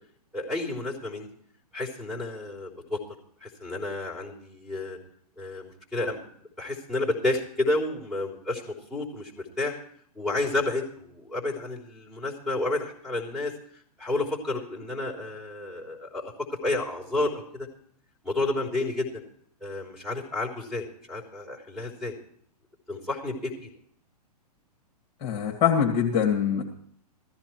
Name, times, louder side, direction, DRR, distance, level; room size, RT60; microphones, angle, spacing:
voice 1, 0.3-1.3 1.7-3.0 3.4-5.0 5.4-6.2 6.6-9.8 10.1-13.5 14.0-17.7 18.2-19.2 19.6-22.1 22.9-23.7, left 2 dB, ahead, -6 dB, 3.4 m, -31 dB
voice 2, 25.2-26.6, left 8 dB, 30° left, 0 dB, 2.3 m, -23 dB
16.0 x 14.0 x 4.5 m, 0.63 s
figure-of-eight pair, 115°, 21 cm